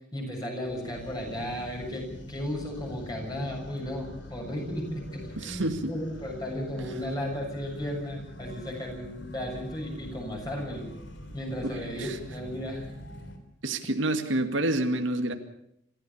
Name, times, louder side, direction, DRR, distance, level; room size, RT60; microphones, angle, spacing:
voice 1, 0.1-10.9 11.3-12.8, left 1 dB, 20° left, 1 dB, 7.0 m, -35 dB
sound 1, 0.6-13.4, equal, 70° left, 3.5 m, -44 dB
voice 2, 5.4-5.9 11.6-12.2 13.6-15.3, right 1 dB, 90° right, 6 dB, 2.2 m, -28 dB
27.0 x 14.5 x 7.1 m, 0.76 s
head